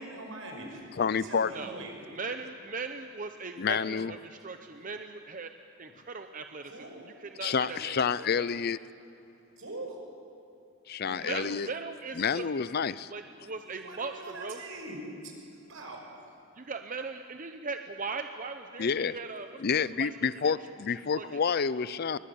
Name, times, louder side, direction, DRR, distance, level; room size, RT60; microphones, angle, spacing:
voice 1, 0.0-1.9 6.7-7.1 8.5-8.6 9.6-10.0 13.6-15.4 15.7-16.0, right 1 dB, 80° right, 1 dB, 5.8 m, -42 dB
voice 2, 1.0-1.5 3.6-4.1 7.4-8.8 10.9-11.7 12.2-13.1 18.8-19.2 19.6-22.2, left 6 dB, 50° left, 17 dB, 0.5 m, -29 dB
voice 3, 2.1-5.5 5.8-8.5 11.1-12.4 13.1-14.6 16.5-19.6 19.9-20.2 20.4-20.6 21.2-21.3, right 4 dB, 40° right, 7 dB, 0.8 m, -39 dB
23.5 x 21.0 x 8.6 m, 2.6 s
head